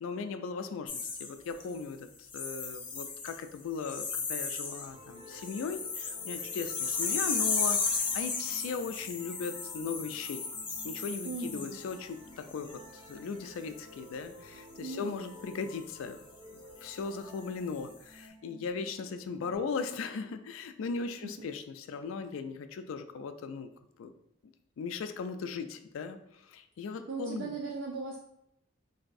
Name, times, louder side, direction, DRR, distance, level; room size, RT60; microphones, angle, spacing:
voice 1, 0.0-2.1 2.3-10.4 10.8-16.2 16.8-23.7 24.0-24.1 24.8-27.5, left 5 dB, 90° left, 9 dB, 0.3 m, -38 dB
sound 1, 0.9-1.8 2.3-3.5 3.8-4.9 5.2-12.0 12.5-12.8, left 5 dB, 25° left, 0.4 m, -34 dB
sound 2, 4.9-19.6, equal, 25° right, 0.5 m, -54 dB
voice 2, 11.2-11.8 14.8-15.4 21.2-21.5 26.9-28.2, right 4 dB, 75° right, 0 dB, 0.4 m, -38 dB
3.9 x 2.6 x 2.5 m, 0.77 s
head